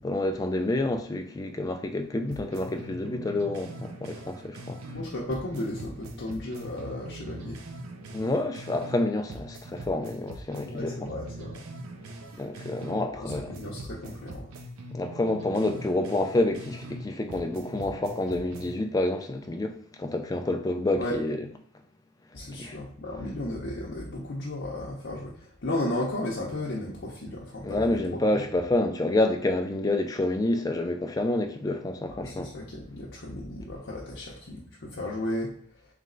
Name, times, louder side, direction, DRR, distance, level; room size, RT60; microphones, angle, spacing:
voice 1, 0.0-5.0 8.1-11.1 12.4-13.6 14.9-21.5 22.6-22.8 27.6-32.5, left 2 dB, 15° left, 0.3 m, -28 dB
sound 1, 2.3-5.0 5.3-9.0 9.3-13.0 13.3-17.0 17.3-18.7, right 1 dB, 75° right, 0.6 m, -42 dB
voice 2, 4.9-7.6 10.6-11.6 13.1-14.5 21.0-21.2 22.3-28.4 32.2-35.5, left 1 dB, 50° left, 0.7 m, -34 dB
3.3 x 3.1 x 3.8 m
head